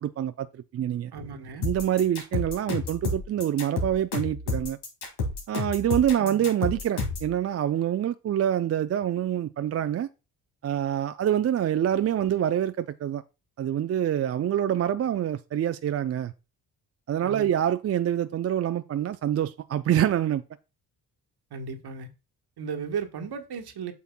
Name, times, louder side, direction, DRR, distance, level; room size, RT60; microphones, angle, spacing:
voice 1, 0.0-1.1 1.6-4.8 5.5-10.1 10.6-13.2 13.6-16.3 17.1-20.4, right 10 dB, 35° right, 0.4 m, -26 dB
voice 2, 1.1-1.7 6.2-6.5 17.2-17.5 21.5-22.1 22.6-23.9, right 6 dB, 50° right, 1.3 m, -35 dB
sound 1, 1.6-7.3, left 3 dB, 75° left, 2.3 m, -30 dB
8.2 x 5.8 x 2.2 m
hypercardioid pair, 40°, 48 cm